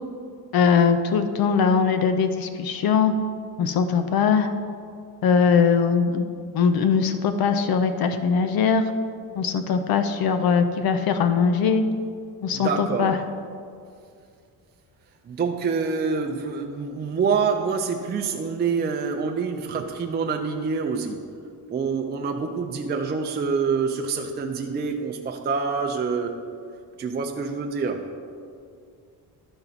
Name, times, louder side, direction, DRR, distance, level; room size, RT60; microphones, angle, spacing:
voice 1, 0.5-3.1 3.6-4.5 5.2-6.3 6.5-8.8 9.3-11.9 12.4-13.2, left 6 dB, 65° left, 8 dB, 0.6 m, -21 dB
voice 2, 12.5-13.1 15.3-21.2 21.7-26.4 27.0-28.0, right 5 dB, 25° right, 2 dB, 0.4 m, -26 dB
12.0 x 4.4 x 4.0 m, 2.3 s
cardioid pair, 125°, 40 cm